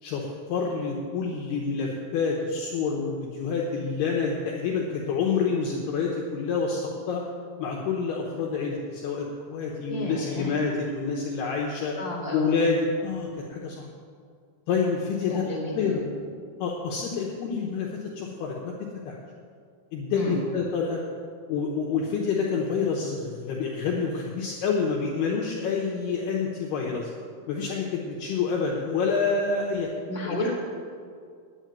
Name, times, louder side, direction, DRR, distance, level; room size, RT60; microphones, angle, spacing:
voice 1, 0.0-7.2 7.6-12.0 12.3-13.9 14.7-15.4 15.7-16.0 16.6-18.7 19.1-19.2 19.9-21.0 21.5-27.1 27.5-29.9 30.3-30.5, left 5 dB, 70° left, -1 dB, 2.6 m, -28 dB
voice 2, 9.9-10.5 12.0-12.6 15.2-16.0 20.1-20.4 30.1-30.5, left 1 dB, 20° right, -3 dB, 2.4 m, -31 dB
10.0 x 9.0 x 9.1 m, 2.2 s
omnidirectional pair, 5.7 m